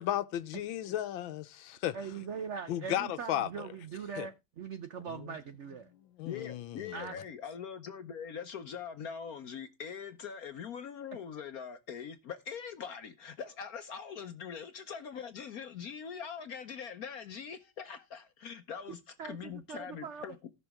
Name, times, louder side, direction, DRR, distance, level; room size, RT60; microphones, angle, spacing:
voice 1, 0.0-2.0 2.7-3.7 4.2-4.3 5.1-5.2 6.2-7.1, left 12 dB, 80° left, 1.5 m, -35 dB
voice 2, 1.9-5.9 6.9-7.2 19.2-20.2, right 6 dB, 85° right, 0.6 m, -41 dB
voice 3, 6.2-20.3, left 7 dB, 60° left, 1.1 m, -42 dB
17.0 x 6.2 x 3.5 m
omnidirectional pair, 2.1 m